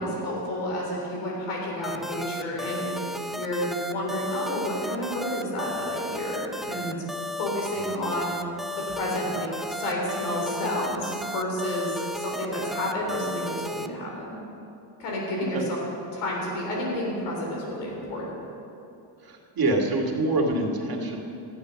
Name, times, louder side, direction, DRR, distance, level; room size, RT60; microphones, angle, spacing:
voice 1, 0.0-2.9 3.3-7.0 7.4-8.4 8.9-14.4 15.0-15.8 16.1-18.2, left 1 dB, 85° left, -2 dB, 3.7 m, -30 dB
sound 1, 1.8-13.9, equal, ahead, 0.4 m, -34 dB
voice 2, 7.8-8.2 15.4-15.7 19.2-21.2, right 2 dB, 45° right, 0 dB, 2.2 m, -26 dB
12.5 x 9.5 x 6.3 m, 2.8 s
supercardioid pair, 75°, 50 cm